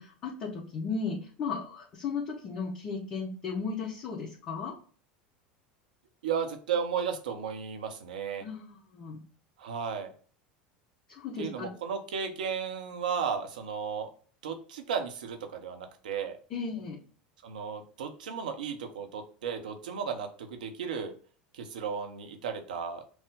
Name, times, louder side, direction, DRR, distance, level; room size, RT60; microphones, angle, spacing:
voice 1, 0.0-4.7 8.4-9.2 11.1-11.7 16.5-17.0, left 5 dB, 40° left, -5 dB, 1.3 m, -35 dB
voice 2, 6.2-8.5 9.6-10.1 11.4-14.1 14.4-16.4 17.4-21.1 21.5-23.0, right 6 dB, 70° right, 5 dB, 0.7 m, -34 dB
6.0 x 2.1 x 3.7 m, 0.42 s
figure-of-eight pair, 75°, 5 cm